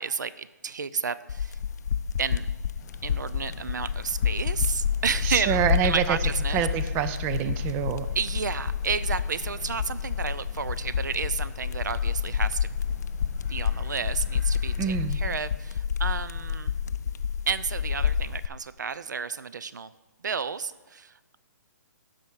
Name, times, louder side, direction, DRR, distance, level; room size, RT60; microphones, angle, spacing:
voice 1, 0.0-1.6 2.2-2.5 3.0-6.6 8.1-12.7 13.5-16.8 17.5-19.9 20.2-21.4, right 6 dB, 80° right, 14 dB, 0.5 m, -31 dB
sound 1, 1.3-18.5, left 7 dB, 65° left, 0.4 m, -29 dB
sound 2, 2.8-15.0, left 3 dB, 40° left, 1.9 m, -49 dB
voice 2, 5.2-6.2 6.5-8.1 14.8-15.2, right 9 dB, 20° right, 11 dB, 0.5 m, -26 dB
12.5 x 5.1 x 6.2 m, 1.2 s
hypercardioid pair, 140°, 10 cm